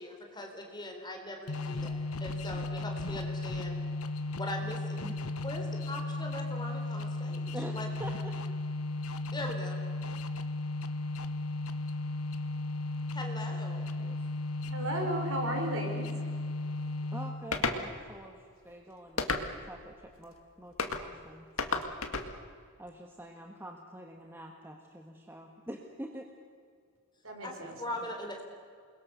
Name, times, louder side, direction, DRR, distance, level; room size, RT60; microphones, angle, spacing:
voice 1, 0.0-3.8 4.4-5.0 5.4-7.9 9.3-9.8 13.1-13.8 27.4-28.4, left 1 dB, 20° left, 2 dB, 3.7 m, -41 dB
sound 1, 1.5-17.6, left 2 dB, 90° left, 1.2 m, -35 dB
voice 2, 7.5-8.5 13.7-14.3 17.1-19.3 19.6-21.9 22.2-22.3 22.8-26.3, right 1 dB, 10° right, 2 dB, 1.5 m, -46 dB
voice 3, 14.7-16.3 27.2-28.0, right 1 dB, 70° right, 3 dB, 4.6 m, -35 dB
sound 2, 17.5-17.8 19.2-19.7 20.8-21.0 21.6-22.3, left 4 dB, 70° left, 1.9 m, -31 dB
28.5 x 21.5 x 6.8 m, 2.1 s
head